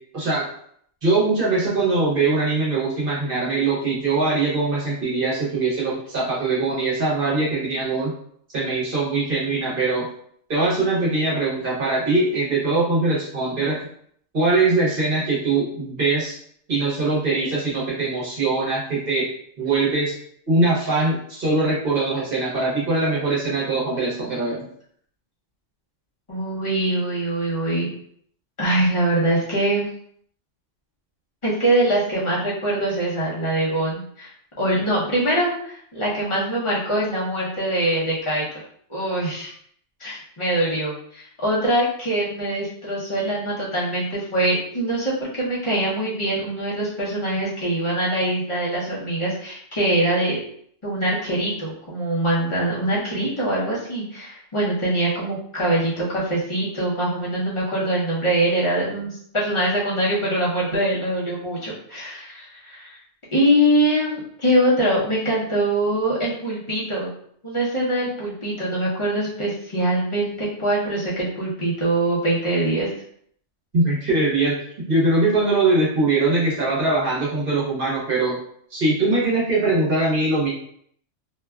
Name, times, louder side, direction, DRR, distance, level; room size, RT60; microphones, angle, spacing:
voice 1, 0.1-0.5 1.0-8.1 8.5-10.1 10.5-13.8 14.3-16.3 16.7-19.2 19.6-20.1 20.5-24.6 73.7-74.5 74.9-78.4 78.7-80.5, right 3 dB, 50° right, -7 dB, 1.0 m, -22 dB
voice 2, 26.3-27.9 28.6-29.9 31.4-34.3 34.6-38.4 38.9-39.5 40.0-50.4 50.8-63.0 63.3-67.1 67.4-72.9, right 1 dB, 35° left, -6 dB, 0.6 m, -23 dB
2.6 x 2.2 x 2.2 m, 0.65 s
omnidirectional pair, 1.3 m